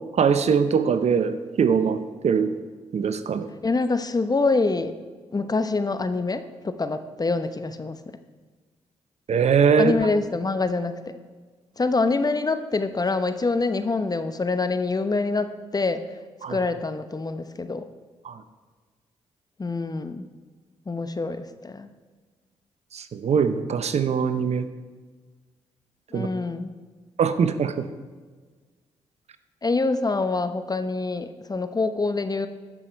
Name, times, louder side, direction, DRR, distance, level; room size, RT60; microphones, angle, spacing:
voice 1, 0.2-2.5 2.9-3.5 9.3-9.9 16.4-16.6 18.2-18.4 22.9-24.7 26.1-26.3 27.2-27.9, right 6 dB, 60° right, 11 dB, 0.8 m, -22 dB
voice 2, 3.6-4.9 5.3-8.0 9.8-11.2 11.8-16.0 16.5-17.9 19.6-20.3 20.9-21.9 26.1-26.7 29.6-32.5, left 3 dB, 30° left, 10 dB, 0.9 m, -25 dB
14.0 x 6.2 x 4.6 m, 1.4 s
supercardioid pair, 45°, 13 cm